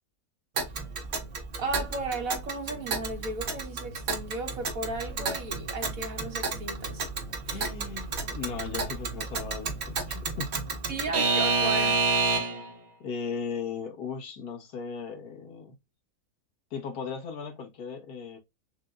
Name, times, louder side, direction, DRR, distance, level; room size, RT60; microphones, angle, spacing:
Alarm / Clock, 0.6-12.7, right 4 dB, 50° right, 1.1 m, -30 dB
voice 1, 1.6-7.0 7.5-7.6 10.9-12.0, right 2 dB, 65° right, 1.6 m, -35 dB
voice 2, 7.5-10.6 13.0-15.8 16.7-18.4, left 5 dB, 90° left, 1.6 m, -37 dB
6.5 x 2.2 x 2.4 m
omnidirectional pair, 1.6 m